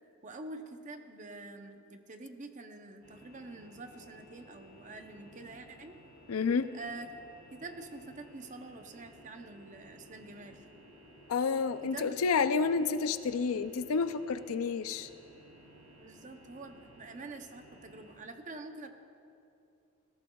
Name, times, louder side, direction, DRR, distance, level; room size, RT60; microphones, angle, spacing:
voice 1, 0.2-6.0 6.7-7.1 7.5-10.6 11.8-12.2 12.6-12.8 16.0-18.9, right 2 dB, 35° right, 6 dB, 0.7 m, -46 dB
airplane-interior-volo-inflight strong, 3.0-18.2, equal, 75° right, 3.0 m, -56 dB
voice 2, 6.3-6.7 11.3-15.1, left 5 dB, 75° left, 12 dB, 0.4 m, -30 dB
18.0 x 14.5 x 2.3 m, 2.7 s
head